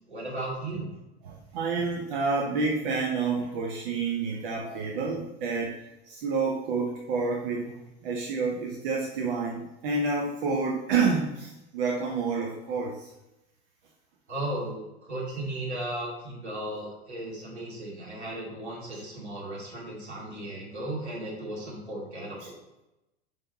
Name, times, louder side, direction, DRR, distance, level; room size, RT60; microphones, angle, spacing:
voice 1, 0.1-0.8 14.3-22.6, right 1 dB, 85° right, -4 dB, 2.5 m, -36 dB
voice 2, 1.2-5.8 6.0-13.1 18.9-19.0, right 4 dB, 55° right, -1 dB, 1.0 m, -29 dB
5.7 x 5.5 x 4.1 m, 0.94 s
figure-of-eight pair, 90°, 33 cm